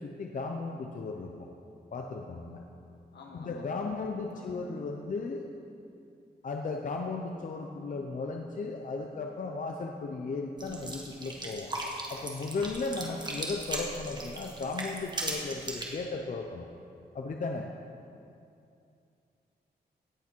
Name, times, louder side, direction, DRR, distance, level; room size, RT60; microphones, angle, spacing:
voice 1, 0.0-1.5 1.9-2.6 3.3-5.5 6.4-11.7 12.1-16.7 17.1-17.7, left 3 dB, 50° left, 2 dB, 0.7 m, -35 dB
voice 2, 3.1-4.7, left 3 dB, 80° left, 0 dB, 1.8 m, -50 dB
sound 1, 10.6-15.9, right 2 dB, 25° right, 1.5 m, -38 dB
16.5 x 8.5 x 4.5 m, 2.6 s
wide cardioid pair, 160°, 17 cm